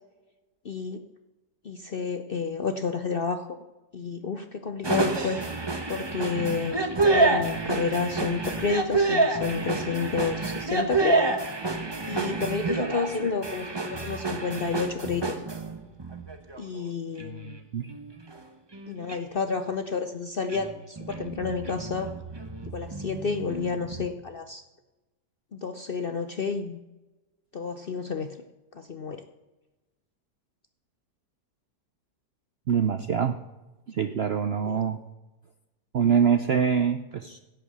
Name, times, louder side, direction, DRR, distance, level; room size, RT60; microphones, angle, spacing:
voice 1, 0.6-1.0 1.6-3.6 3.9-5.4 5.9-6.8 7.1-11.2 12.1-15.3 16.6-17.6 18.9-22.1 22.6-24.6 25.5-26.8 27.5-28.4 28.7-29.2 34.7-34.8, left 5 dB, 55° left, 7 dB, 0.6 m, -30 dB
sound 1, 4.8-16.8 17.2-17.6 17.9-18.4 18.7-19.2 20.5-24.1, right 3 dB, 20° right, 0.9 m, -28 dB
voice 2, 32.7-33.4 33.9-35.0 35.9-37.4, right 7 dB, 65° right, 9 dB, 0.6 m, -24 dB
16.5 x 5.5 x 8.1 m, 1.1 s
omnidirectional pair, 1.7 m